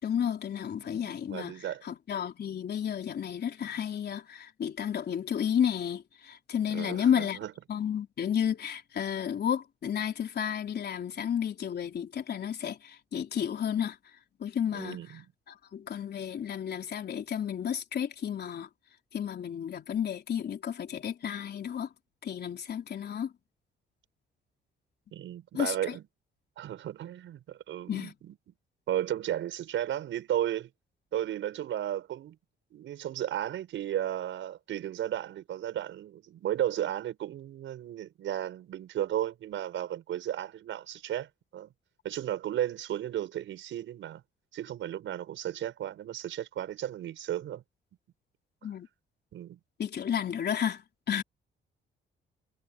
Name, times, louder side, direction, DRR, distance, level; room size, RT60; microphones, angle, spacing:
voice 1, 0.0-1.6 1.8-7.4 7.7-14.0 14.4-15.0 15.5-18.7 19.1-21.9 22.2-23.3 25.5-26.0 27.9-28.1 48.6-48.9 49.8-51.2, left 8 dB, 55° left, 3.9 m, -32 dB
voice 2, 0.9-1.8 6.7-7.5 14.7-15.2 25.1-26.0 26.6-28.3 28.9-30.7 31.1-32.4 32.7-41.7 42.0-44.2 44.5-47.6 49.3-49.6, right 11 dB, 75° right, 6.7 m, -34 dB
cardioid pair, 90°, 20 cm